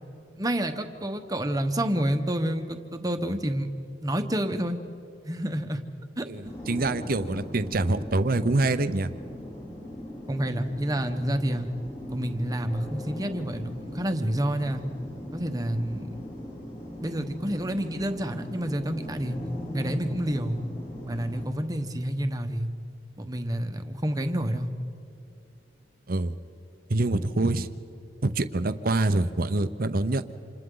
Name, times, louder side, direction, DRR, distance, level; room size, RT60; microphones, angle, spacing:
voice 1, 0.4-3.7 4.0-4.8 5.2-5.8 6.2-6.5 10.3-11.7 12.1-14.8 15.3-16.1 17.0-19.4 19.7-20.7 21.1-22.7 23.2-24.7, right 1 dB, 20° right, 7 dB, 1.1 m, -29 dB
voice 2, 6.2-9.1 26.1-26.3 26.9-27.7 28.2-30.3, right 2 dB, 55° right, 11 dB, 0.8 m, -25 dB
sound 1, 6.5-21.5, equal, 30° left, 2.9 m, -40 dB
29.5 x 27.5 x 3.9 m, 2.7 s
head